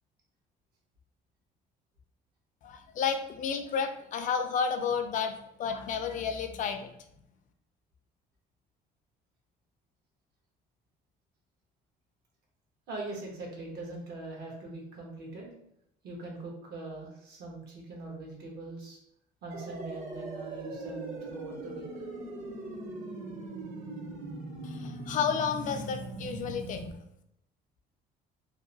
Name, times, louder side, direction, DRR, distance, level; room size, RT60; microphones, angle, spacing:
voice 1, 2.6-5.3 5.6-6.9 24.6-26.9, left 6 dB, 50° left, 7 dB, 0.4 m, -31 dB
voice 2, 12.9-15.5 16.0-19.0 19.4-21.9, right 2 dB, 75° right, -1 dB, 1.0 m, -42 dB
sound 1, 19.5-26.9, right 2 dB, 45° right, 0.7 m, -40 dB
2.7 x 2.1 x 2.6 m, 0.77 s
cardioid pair, 110°, 17 cm